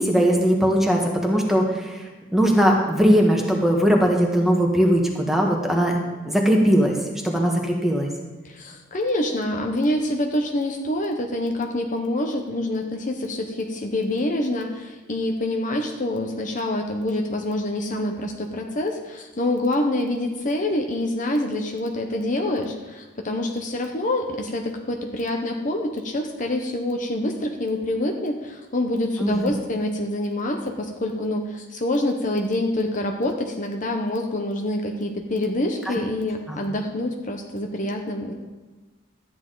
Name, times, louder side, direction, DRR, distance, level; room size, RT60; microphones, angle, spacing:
voice 1, 0.0-7.0 7.2-8.1 29.2-29.5 35.8-35.9 36.5-36.6, equal, ahead, 0 dB, 1.4 m, -20 dB
voice 2, 8.4-38.3, left 1 dB, 40° left, 3 dB, 0.9 m, -26 dB
13.0 x 9.7 x 3.9 m, 1.2 s
head